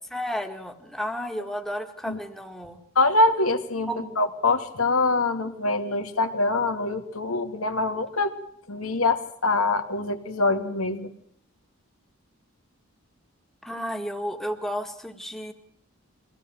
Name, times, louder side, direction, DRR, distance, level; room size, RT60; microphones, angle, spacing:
voice 1, 0.1-2.8 3.8-4.2 13.6-15.5, equal, ahead, 4 dB, 1.9 m, -32 dB
voice 2, 3.0-3.9 4.2-8.3 8.7-11.1, left 2 dB, 85° left, 6 dB, 2.4 m, -24 dB
24.0 x 17.0 x 7.8 m, 0.66 s
head